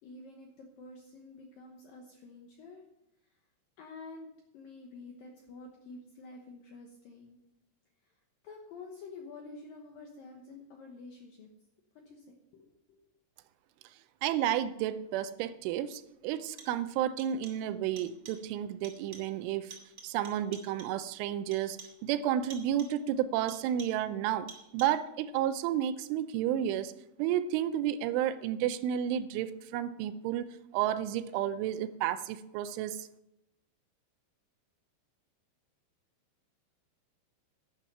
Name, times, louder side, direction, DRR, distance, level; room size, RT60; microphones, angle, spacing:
voice 1, 0.0-2.8 3.2-3.4 3.8-7.4 8.0-11.5 12.0-13.0, left 3 dB, 75° left, 1 dB, 2.1 m, -49 dB
voice 2, 14.2-19.8 20.0-26.9 27.2-30.5 30.7-33.1, right 11 dB, 85° right, 13 dB, 3.0 m, -31 dB
sound 1, 15.3-15.4 16.3-16.9 17.2-17.7 18.0-18.5 18.8-19.4 19.7-21.1 21.5-22.1 22.5-23.1 23.5-24.1 24.5-25.1, right 4 dB, 30° right, 1.4 m, -51 dB
11.5 x 11.0 x 5.5 m, 0.85 s
omnidirectional pair, 5.6 m